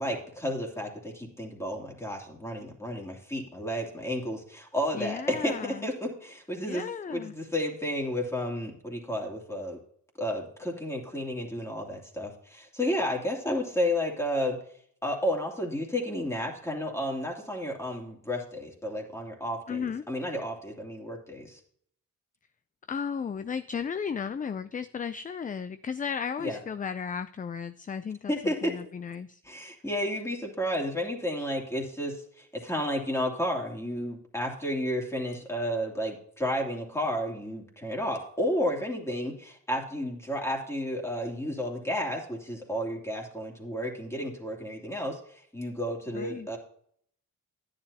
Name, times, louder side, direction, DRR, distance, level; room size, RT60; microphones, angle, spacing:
voice 1, 0.0-6.8 7.1-9.8 10.2-14.6 15.0-21.6 26.4-26.6 28.3-28.7 29.5-46.6, equal, 10° left, -1 dB, 2.8 m, -32 dB
voice 2, 4.9-5.9 6.7-7.3 19.7-20.0 22.9-29.4 46.1-46.5, left 6 dB, 25° left, 12 dB, 0.4 m, -34 dB
10.5 x 10.5 x 2.8 m, 0.64 s
cardioid pair, 80°, 34 cm